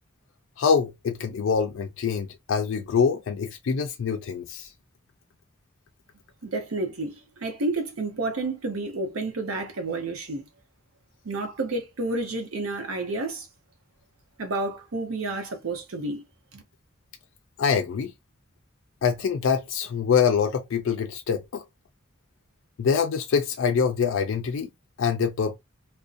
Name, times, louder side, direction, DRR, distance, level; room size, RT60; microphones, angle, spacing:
voice 1, 0.6-4.7 17.6-18.1 19.0-21.6 22.8-24.7 25.0-25.6, left 6 dB, 70° left, 0.4 m, -25 dB
voice 2, 6.4-10.5 11.2-13.5 14.4-16.2 16.5-16.6, right 2 dB, 90° right, 0.7 m, -30 dB
2.5 x 2.1 x 2.4 m
head